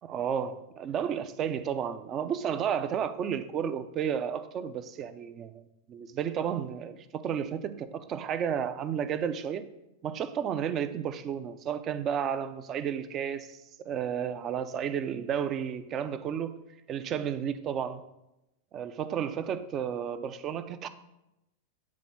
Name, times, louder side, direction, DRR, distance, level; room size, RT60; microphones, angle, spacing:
voice 1, 0.0-5.6 5.9-9.7 10.0-16.6 16.9-18.0 18.7-20.9, right 8 dB, 30° right, 0.4 m, -32 dB
8.4 x 3.7 x 4.0 m
figure-of-eight pair, 90°, 0 cm